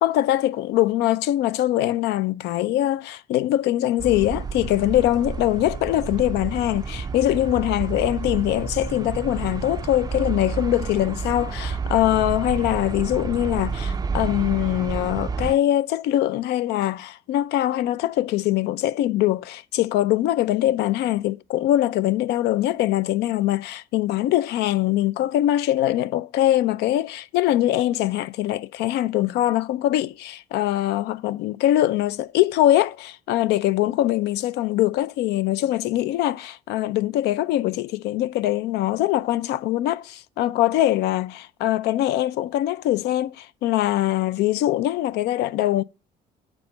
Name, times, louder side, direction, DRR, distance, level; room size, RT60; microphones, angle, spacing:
voice 1, 0.0-45.8, left 14 dB, 80° left, 0.5 m, -22 dB
sound 1, 4.0-15.5, right 5 dB, 25° right, 0.4 m, -30 dB
7.7 x 4.7 x 6.6 m
cardioid pair, 110°, 17 cm